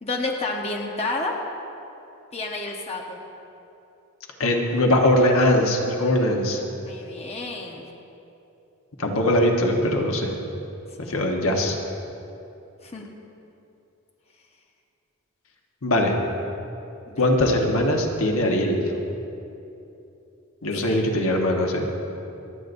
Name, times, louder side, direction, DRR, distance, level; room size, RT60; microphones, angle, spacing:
voice 1, 0.0-1.4 2.3-3.2 6.8-7.8 11.0-11.2 12.8-13.1 17.1-17.2 20.8-21.0, left 2 dB, 30° left, 0 dB, 1.0 m, -30 dB
voice 2, 4.4-6.6 9.0-10.3 11.1-11.8 15.8-16.1 17.2-18.8 20.6-21.9, left 1 dB, 70° left, 1 dB, 1.3 m, -21 dB
27.0 x 9.4 x 2.7 m, 2.8 s
head